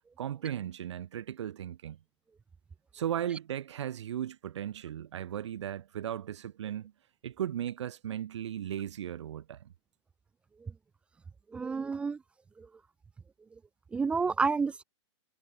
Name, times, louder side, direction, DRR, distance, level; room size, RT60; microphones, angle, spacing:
voice 1, 0.2-2.0 2.9-6.9 7.2-9.7, right 10 dB, 70° right, 1.7 m, -36 dB
voice 2, 11.5-12.2 12.6-12.7 13.9-14.8, right 4 dB, 5° right, 0.5 m, -30 dB
hypercardioid pair, 160°, 15 cm